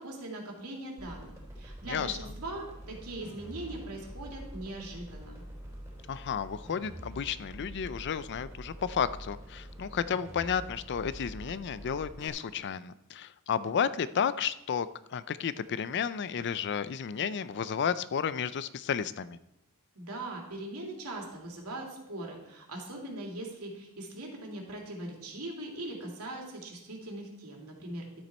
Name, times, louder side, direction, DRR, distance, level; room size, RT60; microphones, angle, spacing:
voice 1, 0.0-5.4 19.9-28.1, right 2 dB, 85° right, 0 dB, 2.7 m, -41 dB
sound 1, 1.0-12.3, equal, 15° right, 3.2 m, -45 dB
voice 2, 1.9-2.2 6.1-19.4, left 7 dB, 50° left, 15 dB, 0.4 m, -32 dB
12.0 x 8.0 x 4.3 m, 0.88 s
head